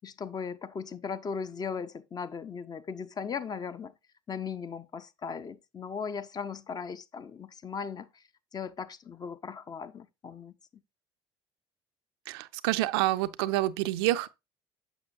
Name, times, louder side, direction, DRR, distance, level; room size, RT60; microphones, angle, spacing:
voice 1, 0.0-3.9 4.3-8.2 8.5-10.5, left 6 dB, 30° left, 0.5 m, -38 dB
voice 2, 12.3-14.3, right 16 dB, 70° right, 0.4 m, -28 dB
6.9 x 6.1 x 2.6 m
hypercardioid pair, 60°, 13 cm